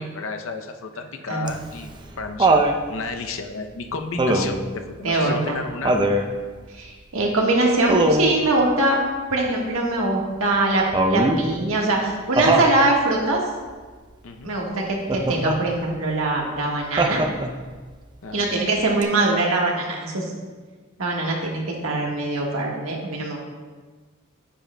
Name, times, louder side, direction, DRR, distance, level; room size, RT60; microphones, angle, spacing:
voice 1, 0.0-2.6 2.9-5.9 14.2-14.5 18.2-18.4, left 4 dB, 70° left, 6 dB, 0.6 m, -32 dB
Laughter, 1.5-2.8 4.2-4.7 5.8-6.3 7.9-8.4 10.9-11.4 12.4-12.7 15.1-15.6 17.0-17.6 19.0-19.1, right 2 dB, 20° right, 0.5 m, -20 dB
voice 2, 5.0-5.6 6.7-9.0 9.3-13.4 14.4-17.2 18.3-20.3 21.0-23.4, right 2 dB, 85° right, -1 dB, 1.4 m, -22 dB
10.0 x 7.3 x 2.2 m, 1.4 s
head